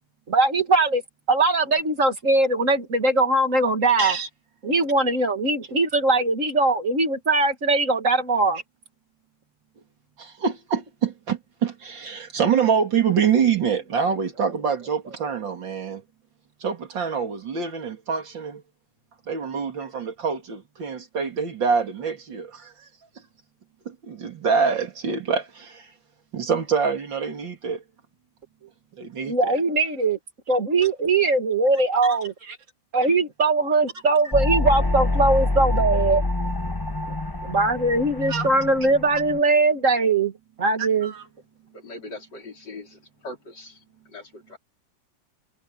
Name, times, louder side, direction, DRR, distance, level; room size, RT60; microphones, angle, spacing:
voice 1, 0.3-1.0 1.3-4.2 4.6-8.6 29.2-30.2 30.5-32.3 32.9-36.2 37.1-37.2 37.4-40.3 40.6-41.1, right 3 dB, 45° right, 2.4 m, -21 dB
voice 2, 4.0-4.3 10.2-16.0 16.6-18.6 19.3-22.7 23.9-25.9 26.3-27.8 29.0-29.4 32.1-32.2 32.5-32.6 33.0-33.1 38.3-38.5 40.8-41.3, right 6 dB, 90° right, 3.3 m, -25 dB
sound 1, 34.3-39.4, left 2 dB, 20° left, 0.6 m, -26 dB
voice 3, 41.7-44.6, left 2 dB, 70° left, 5.0 m, -41 dB
omnidirectional pair, 2.0 m